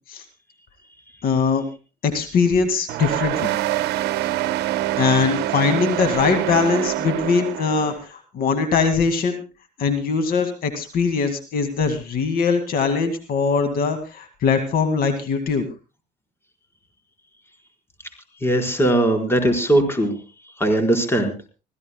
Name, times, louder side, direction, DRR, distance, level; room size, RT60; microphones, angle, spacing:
voice 1, 1.2-1.6 2.0-3.5 5.0-9.4 9.8-15.7, left 5 dB, 65° left, 8 dB, 2.1 m, -21 dB
sound 1, 2.9-8.0, right 14 dB, 80° right, 0.9 m, -25 dB
voice 2, 18.4-20.1 20.6-21.3, right 1 dB, 15° left, 4 dB, 4.6 m, -19 dB
26.0 x 16.0 x 2.3 m, 0.31 s
cardioid pair, 110°, 17 cm